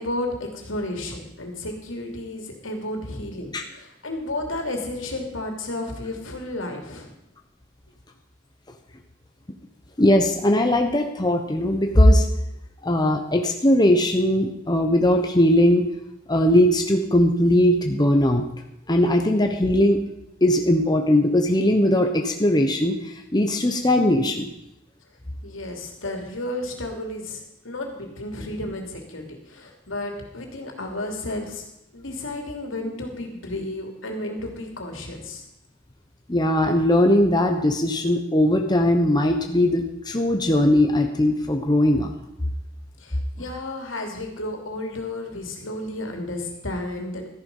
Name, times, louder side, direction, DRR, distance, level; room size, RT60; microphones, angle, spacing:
voice 1, 0.0-7.1 25.4-31.6 31.9-35.5 43.0-47.3, left 1 dB, 80° left, 2 dB, 2.9 m, -32 dB
voice 2, 10.0-12.3 12.8-15.9 16.3-18.4 18.9-20.0 20.4-22.9 23.3-24.5 36.3-42.1, left 1 dB, 20° left, 4 dB, 1.0 m, -19 dB
13.5 x 10.5 x 5.5 m, 0.83 s
head